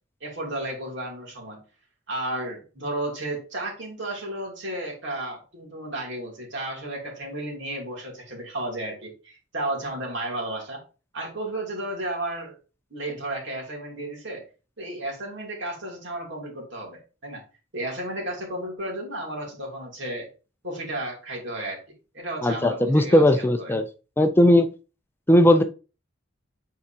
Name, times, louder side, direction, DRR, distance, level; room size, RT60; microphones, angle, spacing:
voice 1, 0.2-1.6 2.1-10.8 11.1-12.6 12.9-14.5 14.8-17.4 17.7-20.3 20.6-21.8 22.1-23.7, right 1 dB, 60° right, 2.9 m, -33 dB
voice 2, 22.4-23.8 24.2-24.7 25.3-25.6, left 1 dB, 10° left, 0.4 m, -17 dB
8.2 x 4.6 x 2.8 m
head